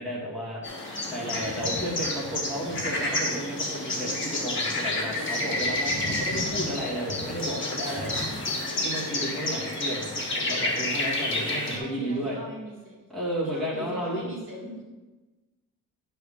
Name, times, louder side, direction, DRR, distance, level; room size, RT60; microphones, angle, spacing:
voice 1, 0.0-8.1 8.8-12.4 13.1-14.4, equal, ahead, -9 dB, 2.1 m, -33 dB
sound 1, 0.6-11.8, left 2 dB, 35° left, 1.6 m, -29 dB
voice 2, 8.2-8.9 11.7-13.0 13.4-14.8, equal, 35° right, -6 dB, 2.0 m, -41 dB
9.7 x 3.4 x 5.6 m, 1.2 s
wide cardioid pair, 175°, 33 cm